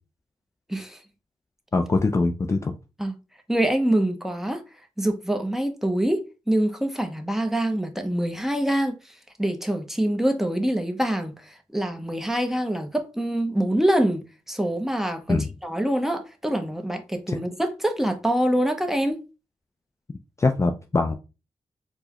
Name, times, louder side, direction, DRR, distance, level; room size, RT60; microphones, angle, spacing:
voice 1, 0.7-1.0 3.0-3.1 3.5-4.6 5.0-19.2, right 1 dB, 5° right, 0.7 m, -25 dB
voice 2, 1.7-2.7 15.3-15.5 17.3-17.4 20.4-21.1, left 3 dB, 25° left, 0.3 m, -22 dB
4.5 x 2.1 x 2.9 m
cardioid pair, 75°, 11 cm